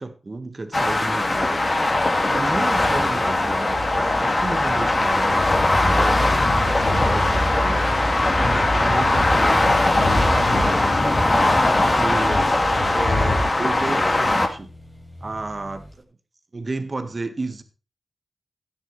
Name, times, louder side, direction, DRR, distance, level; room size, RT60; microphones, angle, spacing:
voice 1, 0.0-1.6 2.2-6.2 6.8-8.1 8.4-9.7 10.1-12.5 12.9-14.7 15.2-16.0 16.5-17.6, right 3 dB, 45° right, 8 dB, 1.7 m, -32 dB
sound 1, 0.7-14.5, left 2 dB, 35° left, 2.4 m, -20 dB
sound 2, 2.4-13.4, left 1 dB, 90° left, 3.9 m, -28 dB
Accelerating revving vroom, 10.6-16.0, equal, 10° left, 2.5 m, -40 dB
13.5 x 9.9 x 3.3 m, 0.32 s
wide cardioid pair, 80°, 0 cm